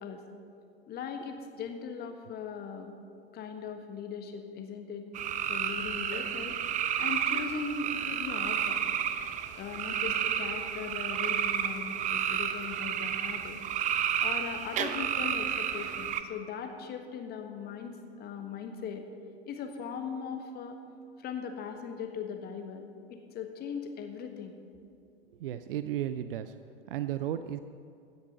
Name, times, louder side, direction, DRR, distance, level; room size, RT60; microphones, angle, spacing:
voice 1, 0.9-2.9 3.3-5.0 5.5-6.6 7.0-8.8 9.5-13.6 14.2-19.0 19.5-20.8 21.2-22.8 23.1-24.6, left 6 dB, 30° left, 5 dB, 1.5 m, -39 dB
sound 1, 5.1-16.2, right 9 dB, 25° right, 0.6 m, -31 dB
voice 2, 25.3-26.5 26.9-27.6, right 11 dB, 60° right, 12 dB, 0.5 m, -34 dB
15.5 x 9.6 x 5.5 m, 2.4 s
figure-of-eight pair, 90°, 32 cm